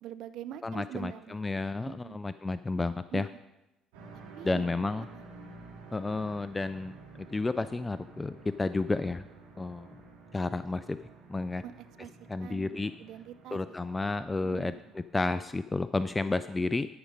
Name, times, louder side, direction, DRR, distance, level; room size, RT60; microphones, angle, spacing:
voice 1, 0.0-1.6 1.9-2.2 3.1-3.2 4.4-4.7 5.1-5.2 11.6-12.1 12.4-14.0 14.4-14.8, right 10 dB, 65° right, 13 dB, 0.5 m, -44 dB
voice 2, 0.6-3.3 4.4-5.0 5.9-9.3 9.6-9.9 10.3-11.0 11.3-11.6 12.3-12.9 13.5-16.9, left 3 dB, 20° left, 13 dB, 0.3 m, -31 dB
sound 1, 3.9-15.7, right 3 dB, 85° right, 2.1 m, -52 dB
12.5 x 5.1 x 5.1 m, 0.97 s
hypercardioid pair, 65°, 0 cm